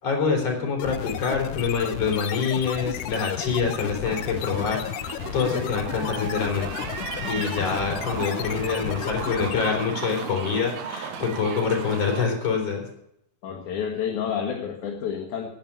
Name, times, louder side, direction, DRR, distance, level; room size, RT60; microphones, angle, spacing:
voice 1, 0.0-6.9 7.2-12.9, left 5 dB, 40° left, 1 dB, 4.3 m, -26 dB
sound 1, 0.8-10.0, left 11 dB, 80° left, 1.9 m, -33 dB
sound 2, 4.0-12.3, right 7 dB, 60° right, 2.2 m, -36 dB
voice 2, 13.4-15.5, left 7 dB, 60° left, 1 dB, 2.7 m, -29 dB
10.5 x 9.4 x 8.5 m, 0.75 s
omnidirectional pair, 4.3 m